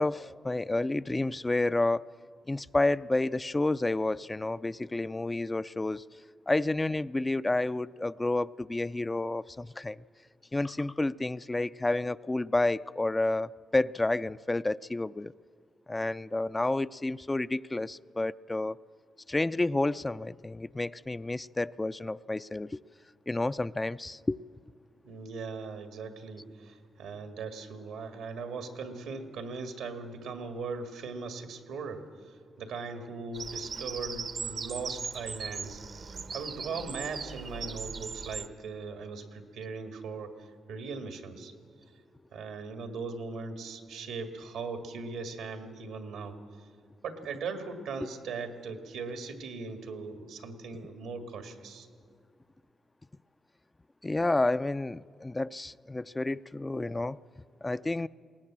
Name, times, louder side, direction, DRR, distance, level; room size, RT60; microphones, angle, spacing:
voice 1, 0.0-2.0 2.5-6.0 6.5-10.0 10.5-15.3 15.9-18.8 19.3-22.8 23.3-24.4 54.0-57.2 57.6-58.1, left 2 dB, 25° left, 0.4 m, -30 dB
voice 2, 25.0-41.5 42.3-46.4 47.0-51.9, right 4 dB, 85° right, 1.9 m, -39 dB
Bird vocalization bird call bird song, 33.3-38.5, right 5 dB, 60° right, 0.9 m, -39 dB
20.5 x 18.5 x 7.4 m
supercardioid pair, 50°, 0 cm